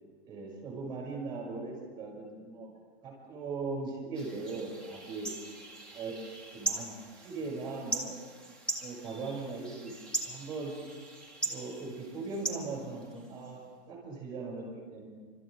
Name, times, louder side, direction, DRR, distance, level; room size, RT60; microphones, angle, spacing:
voice 1, 0.3-2.7 3.0-5.3 5.9-6.2 6.5-8.2 8.8-9.9 10.2-10.7 11.4-13.6 13.9-15.1, right 3 dB, 15° right, -1 dB, 5.7 m, -39 dB
sound 1, 4.1-13.5, right 2 dB, 5° left, 0.6 m, -40 dB
29.0 x 13.0 x 3.3 m, 1.5 s
hypercardioid pair, 160°, 33 cm